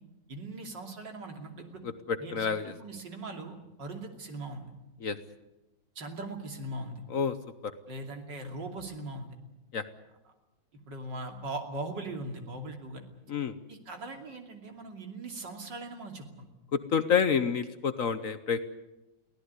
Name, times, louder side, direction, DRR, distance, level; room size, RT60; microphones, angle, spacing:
voice 1, 0.3-1.8 2.2-4.7 5.9-7.0 7.9-9.4 10.2-10.3 10.9-13.0 13.7-16.5, right 2 dB, 70° right, 4 dB, 3.4 m, -40 dB
voice 2, 1.8-2.7 5.0-5.2 7.1-7.4 7.6-7.7 9.7-9.8 13.3-13.5 16.7-18.6, left 6 dB, 55° left, 11 dB, 1.2 m, -28 dB
23.5 x 16.5 x 9.6 m, 0.99 s
omnidirectional pair, 2.0 m